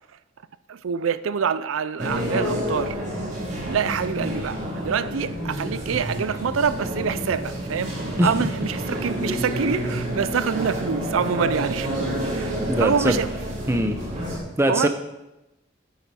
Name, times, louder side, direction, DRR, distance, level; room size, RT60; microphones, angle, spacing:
voice 1, 0.7-3.0 3.7-7.9 8.2-11.9 12.2-13.4 14.7-14.9, right 6 dB, 90° right, 15 dB, 0.4 m, -26 dB
sound 1, 2.0-14.4, equal, 40° right, 3.2 m, -29 dB
voice 2, 12.7-13.2 13.7-14.0 14.6-14.9, equal, 15° right, 7 dB, 0.8 m, -21 dB
10.5 x 9.0 x 4.3 m, 0.95 s
head